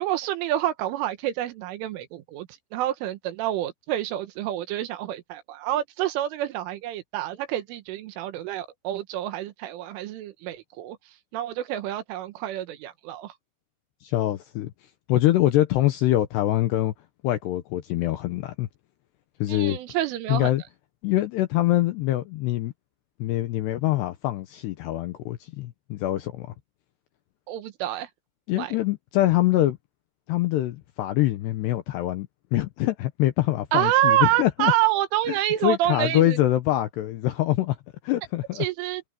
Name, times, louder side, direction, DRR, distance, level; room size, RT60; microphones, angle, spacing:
voice 1, 0.0-11.0 11.3-13.3 19.5-20.5 27.5-28.1 28.6-28.7 33.7-36.4 38.6-39.0, right 13 dB, 80° right, 3.7 m, -27 dB
voice 2, 14.0-14.7 15.1-16.9 17.2-18.7 19.4-19.8 20.3-20.6 21.0-22.7 23.2-26.5 28.5-29.8 30.3-34.7 35.6-37.8 38.0-38.7, left 15 dB, 80° left, 2.6 m, -24 dB
omnidirectional pair, 5.8 m